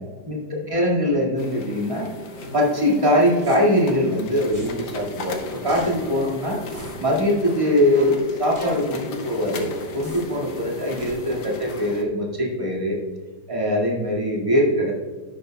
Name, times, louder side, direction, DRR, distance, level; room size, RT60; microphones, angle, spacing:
voice 1, 0.7-2.1 2.5-6.6 7.0-13.0 13.5-14.9, equal, 15° right, -3 dB, 1.9 m, -22 dB
sound 1, 1.4-12.0, left 1 dB, 85° left, 1.8 m, -36 dB
sound 2, 2.3-2.5 3.4-3.5 4.5-4.7 5.7-5.9 6.7-6.9 7.9-8.0 8.5-8.7 10.0-10.2 11.0-11.1, right 2 dB, 35° right, 2.7 m, -40 dB
11.0 x 10.0 x 2.2 m, 1.4 s
omnidirectional pair, 2.0 m